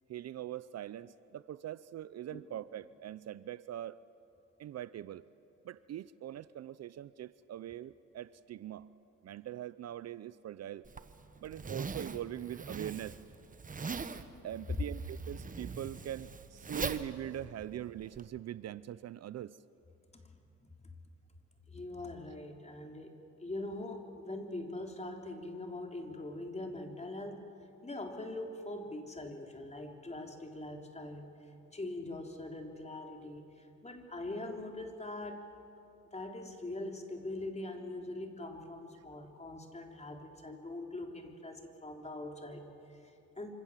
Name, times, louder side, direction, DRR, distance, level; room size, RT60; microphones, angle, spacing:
voice 1, 0.1-4.0 4.6-5.2 5.6-8.9 9.2-10.8 11.4-13.2 14.4-19.6, right 11 dB, 55° right, 17 dB, 0.6 m, -42 dB
Zipper (clothing), 10.8-18.3, right 4 dB, 25° right, 1.3 m, -42 dB
voice 2, 20.6-21.0 21.7-23.2 23.4-27.5 27.8-31.3 31.7-35.5 36.1-43.6, left 2 dB, 20° left, 3 dB, 3.5 m, -43 dB
26.5 x 26.0 x 7.5 m, 2.7 s
cardioid pair, 90°, 30 cm